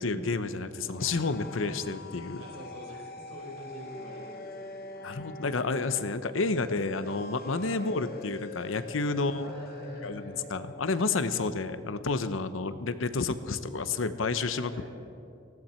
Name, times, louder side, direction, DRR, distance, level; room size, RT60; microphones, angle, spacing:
voice 1, 0.0-2.4 5.0-9.5 10.0-14.7, left 3 dB, 85° left, 12 dB, 0.8 m, -30 dB
sound 1, 0.6-11.0, left 3 dB, 50° left, 1.0 m, -44 dB
voice 2, 2.4-4.8 7.7-7.9 9.2-10.5 14.4-14.9, equal, 70° right, -1 dB, 4.7 m, -46 dB
19.0 x 16.0 x 4.4 m, 2.5 s
head